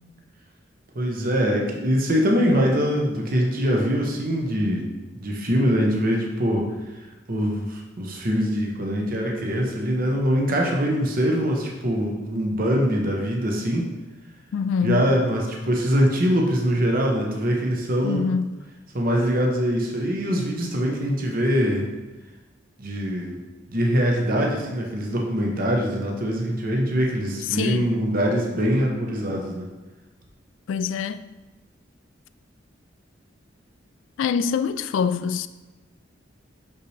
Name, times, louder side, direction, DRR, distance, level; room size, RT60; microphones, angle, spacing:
voice 1, 0.9-4.9 5.1-6.6 7.3-13.9 14.8-18.3 18.9-21.9 22.8-23.4 23.7-29.6, equal, 50° right, 0.9 m, -23 dB
voice 2, 14.5-15.1 18.0-18.5 27.5-28.0 30.7-31.3 34.2-35.5, left 6 dB, 80° left, 0.3 m, -25 dB
6.2 x 5.6 x 3.3 m
head